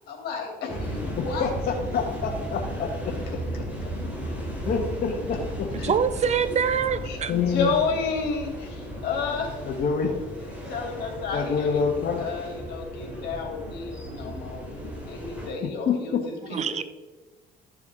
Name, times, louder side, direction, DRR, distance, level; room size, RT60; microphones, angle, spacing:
voice 1, 0.1-1.5 5.8-5.9 7.0-9.5 10.4-11.8 12.2-14.6 15.1-16.8, left 4 dB, 75° left, 2 dB, 2.8 m, -31 dB
sound 1, 0.7-15.5, equal, 10° right, 3.2 m, -35 dB
voice 2, 1.2-3.1 4.7-5.7 7.3-7.7 9.7-10.1 11.3-12.2 15.9-16.2, left 6 dB, 55° left, 1 dB, 1.2 m, -26 dB
voice 3, 5.8-7.3 16.5-16.8, right 7 dB, 40° right, 13 dB, 0.6 m, -24 dB
13.0 x 6.9 x 3.7 m, 1.3 s
cardioid pair, 110°, 17 cm